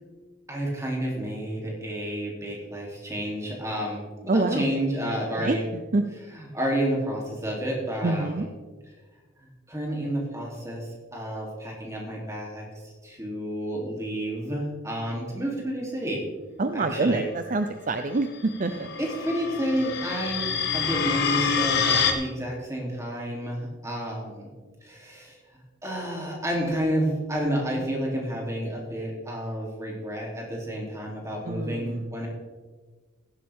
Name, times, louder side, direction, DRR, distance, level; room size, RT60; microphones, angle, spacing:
voice 1, 0.5-5.6 6.3-8.5 9.4-16.2 16.7-17.2 19.0-24.5 24.8-25.4 25.8-32.3, equal, 15° right, -2 dB, 3.1 m, -30 dB
voice 2, 4.3-4.6 5.3-6.0 8.0-8.5 16.6-18.9 27.7-27.8 31.4-32.0, right 2 dB, 40° right, 7 dB, 0.5 m, -26 dB
sound 1, 18.5-22.1, left 6 dB, 55° left, 1.3 m, -26 dB
15.5 x 11.5 x 3.6 m, 1.4 s
head